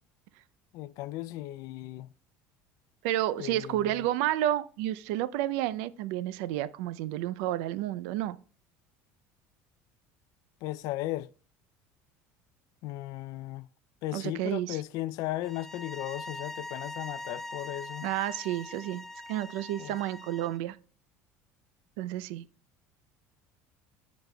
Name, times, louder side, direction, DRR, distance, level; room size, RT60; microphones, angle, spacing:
voice 1, 0.7-2.1 3.4-4.1 10.6-11.3 12.8-13.7 14.0-18.1 19.8-20.0, left 16 dB, 65° left, 0.4 m, -36 dB
voice 2, 3.0-8.4 14.1-14.8 18.0-20.8 22.0-22.5, right 13 dB, 80° right, 0.5 m, -31 dB
sound 1, 15.4-20.6, left 2 dB, 5° left, 0.5 m, -42 dB
14.0 x 5.2 x 2.3 m
cardioid pair, 125°, 7 cm